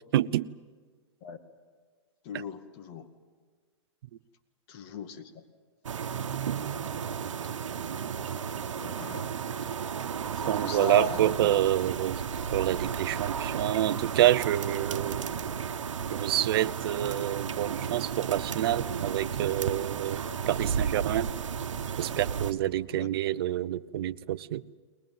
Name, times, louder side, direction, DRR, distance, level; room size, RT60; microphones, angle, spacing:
voice 1, 0.1-0.5 10.5-12.2 12.5-15.3 16.1-21.3 22.0-24.6, right 13 dB, 50° right, 14 dB, 0.7 m, -27 dB
voice 2, 2.2-3.1 4.7-5.4 8.8-9.3 10.3-11.6 20.3-20.4 22.9-23.1, left 7 dB, 35° left, 6 dB, 2.0 m, -39 dB
sound 1, 5.8-22.5, right 7 dB, 90° right, 1.1 m, -33 dB
sound 2, 10.1-21.8, left 6 dB, 60° left, 2.0 m, -55 dB
21.5 x 20.0 x 9.3 m, 1.5 s
hypercardioid pair, 150°, 16 cm